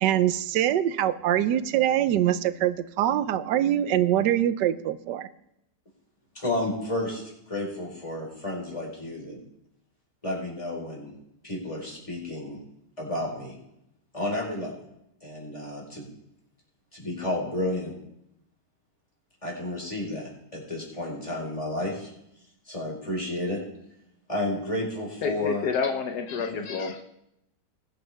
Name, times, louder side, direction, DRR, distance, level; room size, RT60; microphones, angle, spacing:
voice 1, 0.0-5.3, right 11 dB, 85° right, 13 dB, 1.3 m, -24 dB
voice 2, 6.3-9.4 10.2-11.1 11.4-12.6 13.0-13.6 14.1-14.7 15.2-16.1 16.9-17.9 19.4-22.1 22.7-23.6 24.3-25.7 26.5-26.6, left 1 dB, 20° left, -3 dB, 4.5 m, -31 dB
voice 3, 25.2-27.0, left 5 dB, 75° left, 5 dB, 1.4 m, -29 dB
21.0 x 8.7 x 3.4 m, 0.81 s
omnidirectional pair, 1.8 m